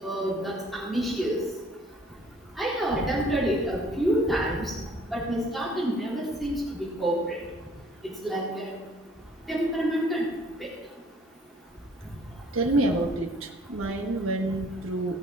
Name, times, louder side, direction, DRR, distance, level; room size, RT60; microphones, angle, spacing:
voice 1, 0.0-1.4 2.6-4.7 5.1-7.4 8.2-8.7 9.5-10.2 10.6-10.7, right 1 dB, ahead, -7 dB, 4.0 m, -27 dB
voice 2, 12.5-15.2, right 2 dB, 75° right, 1 dB, 1.3 m, -27 dB
18.5 x 7.1 x 4.7 m, 1.1 s
head